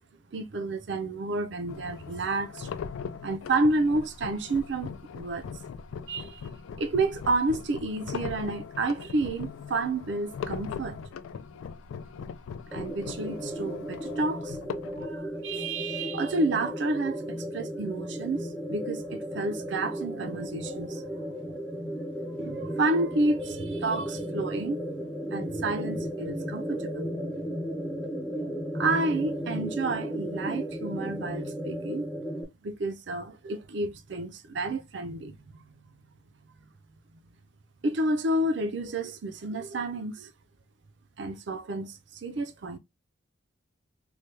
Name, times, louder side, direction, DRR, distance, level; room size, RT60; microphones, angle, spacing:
voice 1, 0.3-2.7 3.2-5.5 6.1-6.4 6.8-11.0 12.7-14.6 14.9-21.2 22.4-24.8 25.3-27.1 28.7-32.1 32.6-35.7 37.8-40.3 41.2-42.8, right 2 dB, 60° right, 0.5 m, -30 dB
sound 1, 1.7-15.2, left 6 dB, 80° left, 0.3 m, -40 dB
sound 2, 12.7-32.4, equal, ahead, 0.4 m, -35 dB
3.3 x 2.2 x 3.2 m
head